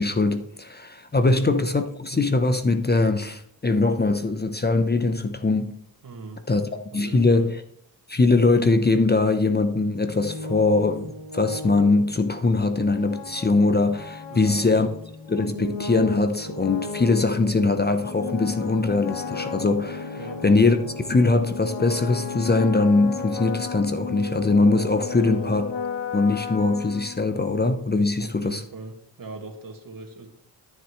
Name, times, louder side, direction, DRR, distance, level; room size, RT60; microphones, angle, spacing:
voice 1, 0.0-5.7 6.5-7.6 8.1-14.9 15.3-25.7 26.1-28.6, left 3 dB, 20° left, 0.8 m, -22 dB
voice 2, 6.0-6.4 6.9-7.5 14.3-15.0 20.2-20.4 25.1-25.5 28.2-30.3, right 3 dB, 50° right, 2.1 m, -39 dB
sound 1, 10.0-27.7, left 4 dB, 85° left, 1.3 m, -34 dB
12.5 x 7.3 x 3.2 m
cardioid pair, 55°, 44 cm